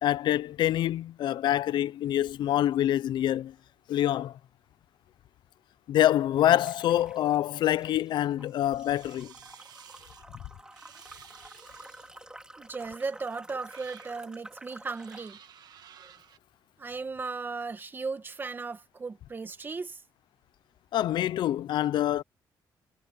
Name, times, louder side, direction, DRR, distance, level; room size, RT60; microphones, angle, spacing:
voice 1, 0.0-3.5 3.9-4.4 5.9-9.3 20.9-22.2, left 12 dB, 80° left, 0.6 m, -26 dB
sound 1, 6.4-7.4 7.7-15.3, right 1 dB, 10° right, 3.1 m, -50 dB
sound 2, 8.4-10.2 10.7-12.3 13.0-13.1 13.6-14.2 14.9-16.4, right 9 dB, 60° right, 1.5 m, -53 dB
voice 2, 12.6-15.4 16.0-16.1 16.8-20.0, right 4 dB, 25° right, 1.6 m, -36 dB
cardioid pair, 125°, 8 cm